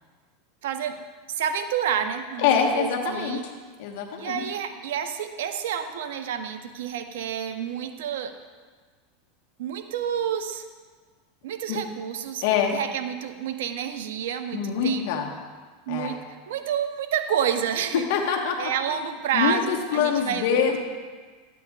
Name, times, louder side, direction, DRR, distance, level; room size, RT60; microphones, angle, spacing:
voice 1, 0.6-3.4 4.2-8.4 9.6-10.6 11.4-12.4 12.7-15.2 15.9-18.1 18.6-20.4, right 8 dB, 80° right, 7 dB, 0.8 m, -29 dB
voice 2, 2.4-3.4 3.8-4.5 11.7-11.8 12.4-12.7 14.5-15.3 15.9-16.2 18.1-18.7 19.3-20.8, left 7 dB, 70° left, 2 dB, 1.4 m, -24 dB
13.0 x 9.3 x 2.5 m, 1.5 s
supercardioid pair, 120°, 0 cm